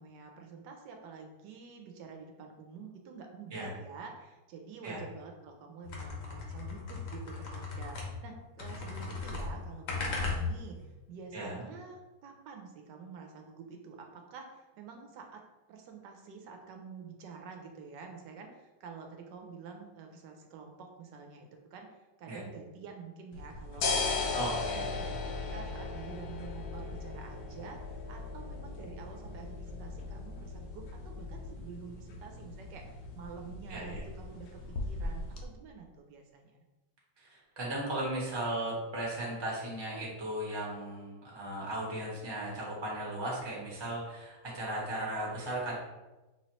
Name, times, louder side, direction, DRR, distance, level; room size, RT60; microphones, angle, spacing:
voice 1, 0.0-15.4 15.7-24.6 24.9-36.6, right 5 dB, 75° right, 3 dB, 1.2 m, -48 dB
sound 1, 5.8-8.3 8.6-10.8, left 4 dB, 55° left, 1.1 m, -37 dB
sound 2, 23.3-35.4, left 3 dB, 80° left, 1.3 m, -38 dB
voice 2, 24.3-24.9 33.7-34.0 37.2-45.7, right 1 dB, 20° right, -4 dB, 0.8 m, -36 dB
5.2 x 3.1 x 2.9 m, 1.1 s
omnidirectional pair, 1.9 m